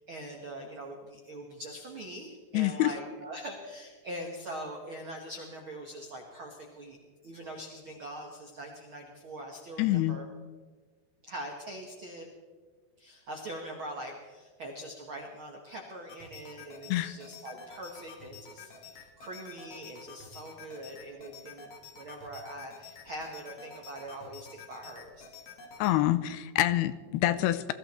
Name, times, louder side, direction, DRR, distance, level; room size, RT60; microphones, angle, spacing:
voice 1, 0.0-7.0 7.2-10.2 11.2-12.3 13.0-25.2, right 1 dB, 65° right, 1 dB, 1.2 m, -42 dB
voice 2, 2.5-3.0 9.8-10.2 16.9-17.1 25.8-27.7, left 15 dB, 80° left, 14 dB, 2.6 m, -26 dB
sound 1, 16.1-25.9, left 4 dB, 50° left, 2.1 m, -50 dB
21.0 x 14.5 x 4.3 m, 1.5 s
omnidirectional pair, 4.8 m